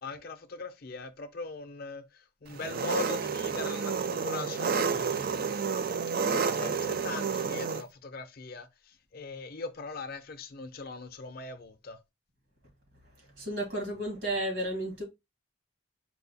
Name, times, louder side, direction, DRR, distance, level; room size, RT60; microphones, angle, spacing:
voice 1, 0.0-5.5 6.3-12.0, left 3 dB, 45° left, 0.6 m, -40 dB
Engine, 2.6-7.8, right 5 dB, 45° right, 0.3 m, -30 dB
voice 2, 13.4-15.0, right 1 dB, 65° right, 2.0 m, -32 dB
4.7 x 2.3 x 3.9 m
head